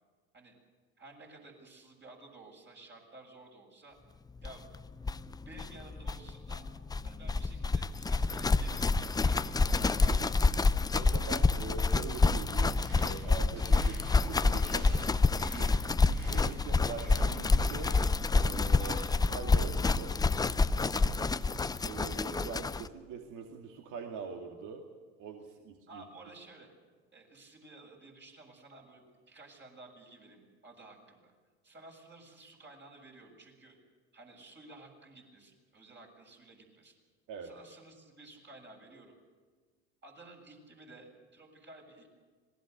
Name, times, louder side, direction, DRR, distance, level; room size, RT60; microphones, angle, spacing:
voice 1, 1.0-4.0 4.4-4.6 5.5-6.7 7.0-10.4 18.8-19.2 20.9-21.2 25.9-26.7 27.1-31.3 31.6-33.8 34.1-36.9 37.4-39.1 40.0-42.1, right 2 dB, 30° right, 0 dB, 7.2 m, -53 dB
sound 1, 4.4-4.5 4.7-4.8 5.0-22.9, left 3 dB, 10° left, 0.6 m, -28 dB
voice 2, 10.9-14.9 15.5-17.9 18.4-19.0 19.3-20.2 20.6-21.3 21.8-24.8 25.2-26.1 37.3-37.5, right 6 dB, 55° right, 3 dB, 2.4 m, -43 dB
sound 2, 12.7-18.0, right 2 dB, 85° right, 7.4 m, -52 dB
26.5 x 19.5 x 6.7 m, 1.5 s
hypercardioid pair, 80°, 37 cm